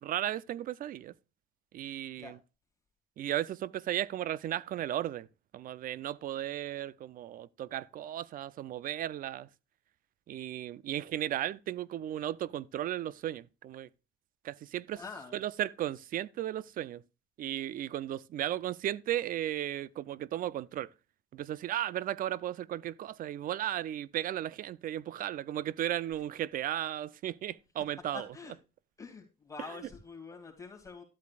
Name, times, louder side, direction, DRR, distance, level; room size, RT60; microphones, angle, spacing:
voice 1, 0.0-1.1 1.7-2.4 3.2-5.3 5.5-9.5 10.3-13.9 14.4-15.0 15.3-17.0 17.4-20.9 21.3-28.3, right 12 dB, 55° right, 0.5 m, -35 dB
voice 2, 14.9-15.4 28.1-28.6 29.0-31.0, left 4 dB, 20° left, 2.6 m, -46 dB
12.5 x 8.3 x 2.4 m
cardioid pair, 110°, 17 cm